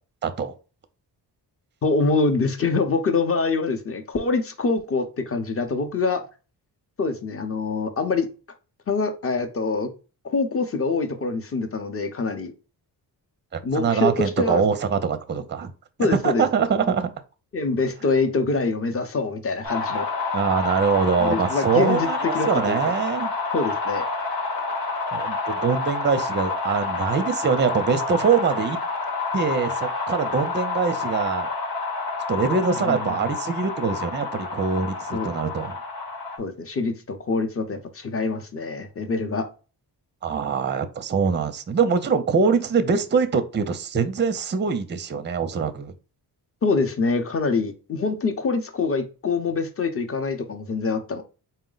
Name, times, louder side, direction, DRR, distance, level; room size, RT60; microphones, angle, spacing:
voice 1, 0.2-0.5 13.5-15.7 16.2-17.1 20.3-23.3 25.1-28.8 29.3-31.5 32.3-35.8 40.2-45.9, right 6 dB, 25° right, 10 dB, 0.5 m, -23 dB
voice 2, 1.8-6.3 7.0-8.3 8.9-9.9 10.2-12.5 13.6-14.6 16.0-16.5 16.8-16.9 17.5-20.1 21.2-22.1 22.3-22.9 23.5-24.0 32.8-33.2 35.1-35.4 36.4-39.5 46.6-51.2, left 4 dB, 35° left, 6 dB, 0.7 m, -25 dB
sound 1, 19.6-36.4, left 3 dB, 55° left, 1.1 m, -28 dB
4.2 x 2.1 x 3.8 m, 0.33 s
cardioid pair, 90°, 42 cm